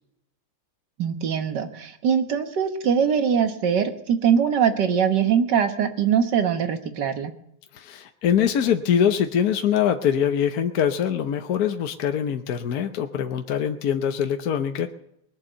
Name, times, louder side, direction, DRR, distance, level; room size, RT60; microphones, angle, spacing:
voice 1, 1.0-7.3, right 7 dB, 70° right, 8 dB, 1.9 m, -22 dB
voice 2, 7.7-14.9, left 8 dB, 60° left, 7 dB, 1.2 m, -23 dB
20.5 x 7.1 x 7.9 m, 0.78 s
omnidirectional pair, 2.0 m